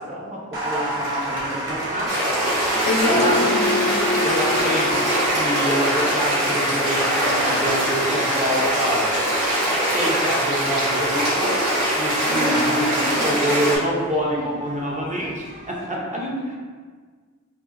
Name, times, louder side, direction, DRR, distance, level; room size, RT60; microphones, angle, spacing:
voice 1, 0.0-2.2 3.1-3.4 4.2-9.1 9.9-16.2, equal, 25° right, -4 dB, 0.7 m, -27 dB
Applause, 0.5-15.9, right 1 dB, 45° right, 1.4 m, -32 dB
sound 1, 2.1-13.8, right 1 dB, 80° right, 1.4 m, -22 dB
sound 2, 2.8-7.9 8.2-8.3, left 3 dB, 15° left, 0.4 m, -29 dB
voice 2, 2.9-3.9 12.2-12.6 16.1-16.5, left 2 dB, 65° left, -2 dB, 0.7 m, -26 dB
5.4 x 2.1 x 2.5 m, 1.5 s
wide cardioid pair, 75°, 30 cm